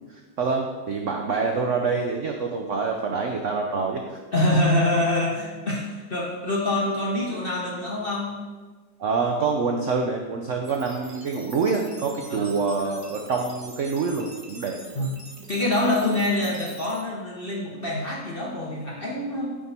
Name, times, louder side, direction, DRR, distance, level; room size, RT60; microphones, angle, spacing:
voice 1, 0.1-4.2 9.0-14.8, right 4 dB, 80° right, 2 dB, 0.6 m, -26 dB
voice 2, 4.3-8.4 12.3-12.7 14.9-15.1 15.5-19.6, left 1 dB, 50° left, -3 dB, 0.7 m, -25 dB
sound 1, 10.6-17.0, right 2 dB, 35° right, 1.1 m, -45 dB
9.5 x 3.7 x 4.1 m, 1.3 s
omnidirectional pair, 2.0 m